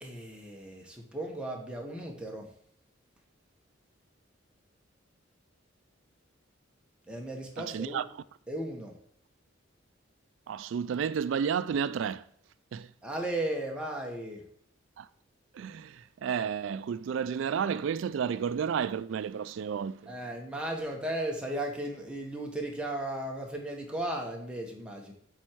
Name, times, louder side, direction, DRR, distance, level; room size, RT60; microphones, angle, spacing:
voice 1, 0.0-2.4 7.1-8.0 8.5-8.9 13.0-14.4 20.1-25.1, right 1 dB, 5° right, 1.3 m, -35 dB
voice 2, 7.6-8.1 10.5-12.3 12.7-12.9 15.0-15.1 15.5-20.1, right 7 dB, 70° right, 0.3 m, -31 dB
8.5 x 4.5 x 4.6 m
head